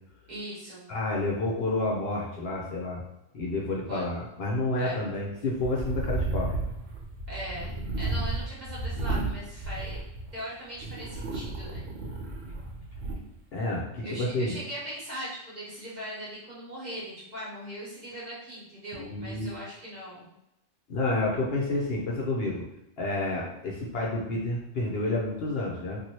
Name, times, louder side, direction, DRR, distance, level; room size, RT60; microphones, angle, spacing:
voice 1, 0.3-0.9 3.9-4.0 4.8-5.0 7.3-10.0 10.3-11.9 14.0-20.3, equal, 40° right, -9 dB, 1.2 m, -39 dB
voice 2, 0.9-3.0 3.3-6.6 13.5-14.6 18.9-19.5 20.9-22.6 23.0-26.0, left 2 dB, 60° left, -3 dB, 0.8 m, -29 dB
sound 1, 5.6-10.4 10.8-13.2, right 2 dB, 90° right, 1.0 m, -33 dB
2.9 x 2.6 x 2.7 m, 0.86 s
omnidirectional pair, 1.2 m